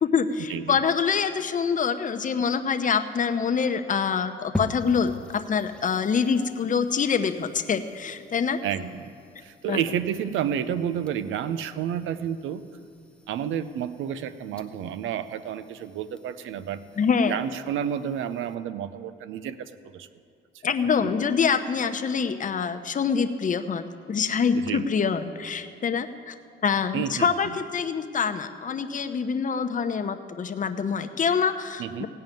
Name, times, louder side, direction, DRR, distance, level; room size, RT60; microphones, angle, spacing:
voice 1, 0.0-8.6 9.7-9.8 17.0-17.4 20.6-26.3 26.6-32.1, left 6 dB, 40° left, 7 dB, 0.8 m, -25 dB
sound 1, 4.5-18.5, left 2 dB, 5° left, 0.8 m, -43 dB
voice 2, 8.6-9.2 9.4-12.6 13.3-16.8 17.2-20.1 20.6-20.7 21.0-21.2 24.5-24.8 26.9-27.6 31.8-32.1, right 9 dB, 80° right, 13 dB, 0.6 m, -30 dB
16.5 x 5.6 x 9.1 m, 2.3 s
cardioid pair, 90°, 20 cm